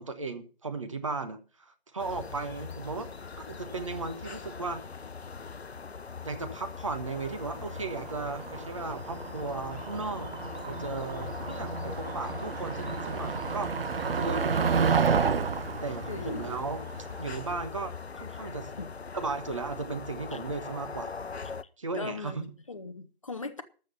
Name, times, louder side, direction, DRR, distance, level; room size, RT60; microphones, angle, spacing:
voice 1, 0.0-3.1 3.5-4.8 6.2-10.3 10.6-13.7 14.0-15.1 15.8-16.9 17.2-18.7 19.1-21.1 21.8-22.5, right 3 dB, 30° right, 1.2 m, -36 dB
sound 1, 2.0-21.6, left 5 dB, 85° left, 0.8 m, -41 dB
Motor vehicle (road), 7.1-17.5, right 6 dB, 65° right, 0.5 m, -31 dB
voice 2, 16.1-16.5 18.8-18.9 20.3-20.4 21.9-23.6, left 4 dB, 30° left, 1.0 m, -39 dB
13.5 x 6.3 x 6.8 m
figure-of-eight pair, 160°, 31 cm